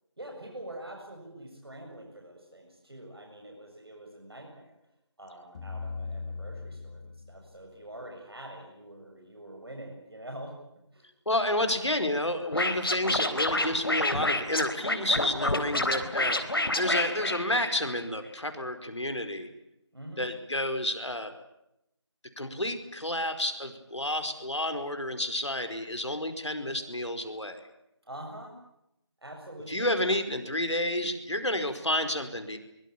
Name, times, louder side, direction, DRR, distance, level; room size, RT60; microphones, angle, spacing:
voice 1, 0.2-4.8 5.2-10.6 10.9-11.1 15.5-16.0 19.9-20.3 28.0-28.6 29.2-29.9, right 1 dB, 55° right, 2 dB, 7.3 m, -45 dB
sound 1, 5.5-7.8, left 4 dB, 10° left, 1.6 m, -39 dB
voice 2, 11.2-16.4 16.8-19.5 20.2-21.3 22.4-27.6 29.7-32.6, left 1 dB, 75° left, 7 dB, 5.1 m, -30 dB
Scratching (performance technique), 12.5-18.0, left 2 dB, 55° left, 3.9 m, -28 dB
24.5 x 23.5 x 8.7 m, 0.84 s
figure-of-eight pair, 170°, 15 cm